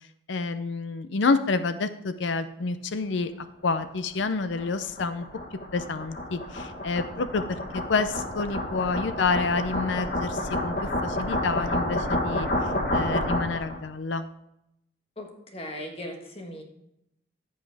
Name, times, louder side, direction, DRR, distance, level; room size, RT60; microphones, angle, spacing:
voice 1, 0.3-5.3 5.7-7.6 7.9-14.3, left 4 dB, 70° left, 11 dB, 0.5 m, -28 dB
sound 1, 3.8-13.8, left 1 dB, 50° left, 1.5 m, -30 dB
voice 2, 15.2-16.6, left 1 dB, 30° left, 2 dB, 1.5 m, -38 dB
14.5 x 5.5 x 3.4 m, 0.80 s
head